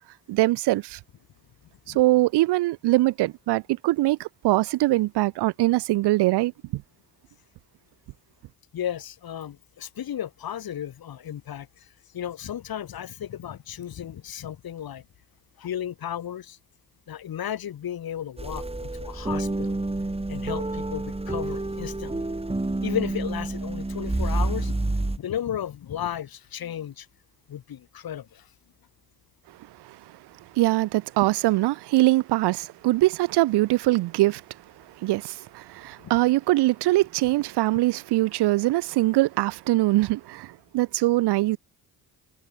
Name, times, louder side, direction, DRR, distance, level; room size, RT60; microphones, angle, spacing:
voice 1, 0.3-1.0 1.9-6.8 30.6-34.4 35.0-41.6, right 18 dB, 80° right, 0.9 m, -22 dB
voice 2, 8.7-11.7 12.1-15.0 15.6-16.6 17.1-19.8 20.3-22.3 22.8-27.1 27.5-28.4 36.0-36.2, left 10 dB, 65° left, 3.4 m, -34 dB
sound 1, 18.4-25.2, right 2 dB, 15° right, 4.9 m, -28 dB
supercardioid pair, 70°, 40 cm